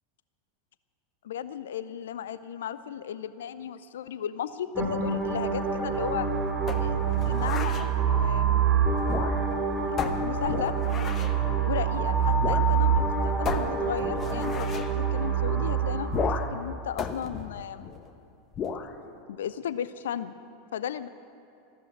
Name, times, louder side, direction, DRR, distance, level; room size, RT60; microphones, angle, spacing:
voice 1, 1.2-6.3 6.8-8.6 10.0-10.7 11.7-16.1 16.4-17.9 19.3-20.3 20.7-21.1, left 9 dB, 65° left, 15 dB, 0.5 m, -35 dB
sound 1, 4.7-16.7, right 6 dB, 20° right, 2.3 m, -26 dB
sound 2, 6.7-7.9 9.0-9.6 10.0-11.4 12.4-12.7 13.0-13.1 13.4-14.9 16.1-16.6 17.0-18.1 18.5-18.9, left 6 dB, 30° left, 1.0 m, -33 dB
13.5 x 13.0 x 7.9 m, 2.7 s
figure-of-eight pair, 85°, 0 cm